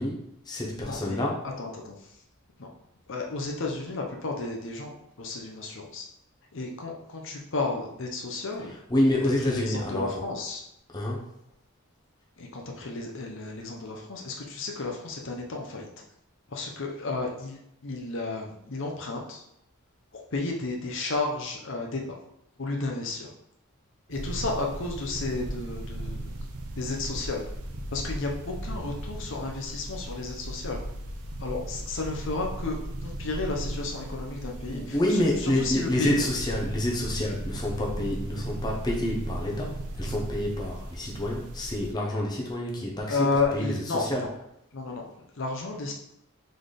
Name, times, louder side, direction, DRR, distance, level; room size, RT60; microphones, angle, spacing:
voice 1, 0.0-1.5 8.6-10.2 10.9-11.3 34.7-44.3, left 1 dB, 20° left, -3 dB, 0.7 m, -28 dB
voice 2, 0.8-1.2 1.6-1.9 2.6-2.7 3.1-6.0 6.5-8.7 9.5-10.6 12.4-15.9 16.5-19.4 20.3-22.2 22.6-23.3 24.1-26.3 26.8-27.5 27.9-30.8 31.4-35.0 35.4-36.2 43.1-44.3 44.7-45.1 45.4-45.9, left 3 dB, 55° left, 0 dB, 0.7 m, -32 dB
sound 1, 24.1-41.9, right 1 dB, 85° right, 0.7 m, -37 dB
4.0 x 3.9 x 3.3 m, 0.77 s
head